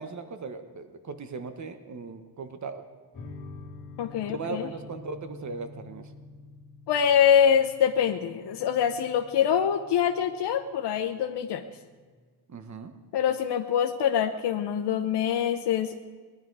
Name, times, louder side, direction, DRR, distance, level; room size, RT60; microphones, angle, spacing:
voice 1, 0.0-2.8 4.3-6.1 12.5-12.9, right 4 dB, 45° right, 8 dB, 1.3 m, -38 dB
sound 1, 3.1-12.1, left 3 dB, 50° left, 2.2 m, -48 dB
voice 2, 4.0-4.7 6.9-11.7 13.1-16.0, left 8 dB, 75° left, 6 dB, 0.9 m, -24 dB
19.5 x 11.0 x 4.8 m, 1.5 s
cardioid pair, 105°, 41 cm